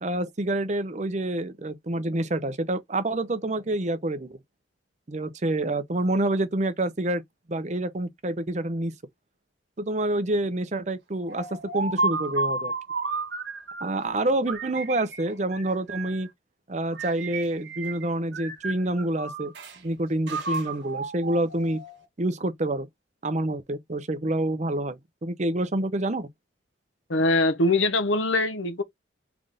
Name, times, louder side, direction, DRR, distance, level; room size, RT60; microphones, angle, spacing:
voice 1, 0.0-4.4 5.1-7.2 7.5-8.9 9.8-12.7 13.8-16.3 16.7-19.5 19.8-21.8 22.2-22.9 23.2-26.3, right 1 dB, 35° right, 0.7 m, -27 dB
sound 1, 11.3-14.0 14.5-16.3 16.9-18.0 18.3-19.8 20.3-22.0, right 3 dB, 65° right, 1.4 m, -32 dB
voice 2, 27.1-28.8, left 2 dB, 80° left, 1.0 m, -22 dB
3.8 x 3.6 x 3.7 m
head